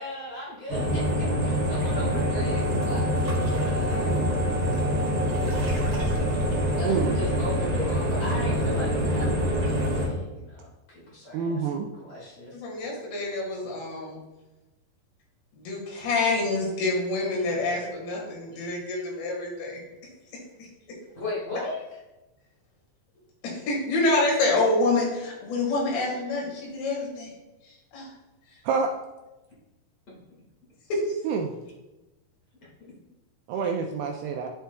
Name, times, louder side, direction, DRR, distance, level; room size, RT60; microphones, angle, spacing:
voice 1, 0.0-4.7 5.2-5.4 6.7-12.6 21.1-21.8 32.8-32.9 33.5-33.8, left 1 dB, 45° left, -6 dB, 1.4 m, -38 dB
sound 1, 0.7-10.1, equal, 40° right, 1.6 m, -25 dB
voice 2, 11.3-11.9 28.7-28.9 31.3-31.6 33.5-34.5, right 5 dB, 85° right, 3 dB, 2.3 m, -27 dB
voice 3, 12.5-14.2 15.5-19.8 20.6-20.7 23.4-27.3 27.6-28.1 30.9-31.0, left 2 dB, 85° left, -2 dB, 4.0 m, -27 dB
11.5 x 4.4 x 2.3 m, 1.0 s
omnidirectional pair, 4.9 m